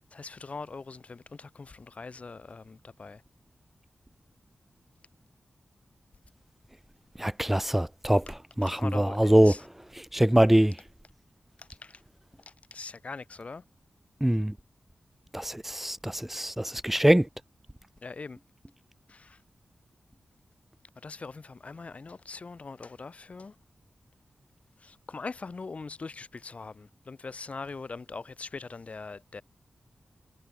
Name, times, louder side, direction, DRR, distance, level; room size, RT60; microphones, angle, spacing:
voice 1, 0.1-3.2 8.6-9.6 11.6-12.0 12.5-13.6 18.0-18.4 19.1-19.4 21.0-23.6 24.8-29.4, left 4 dB, 60° left, 7.3 m, -42 dB
voice 2, 7.2-8.2 8.6-9.5 10.0-10.8 14.2-14.6 15.3-17.3, right 1 dB, 10° right, 0.4 m, -23 dB
cardioid pair, 40°, 3 cm